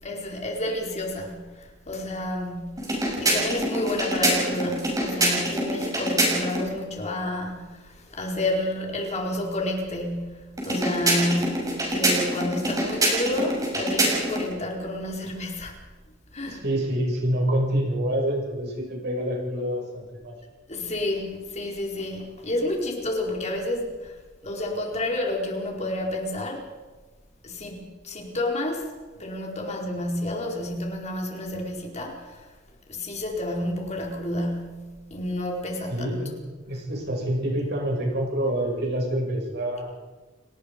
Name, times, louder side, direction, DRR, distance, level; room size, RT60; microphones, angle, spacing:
voice 1, 0.0-2.9 3.2-15.8 16.3-16.6 20.7-24.1 24.4-26.7 27.4-28.9 29.2-32.4 32.9-36.1, left 1 dB, 35° left, 1 dB, 4.5 m, -30 dB
sound 1, 2.8-6.7 10.6-14.5, right 1 dB, 20° right, 6.2 m, -25 dB
voice 2, 16.4-20.4 35.9-36.4 36.7-39.9, right 1 dB, 60° right, 0 dB, 7.3 m, -27 dB
29.5 x 19.5 x 5.3 m, 1.3 s
head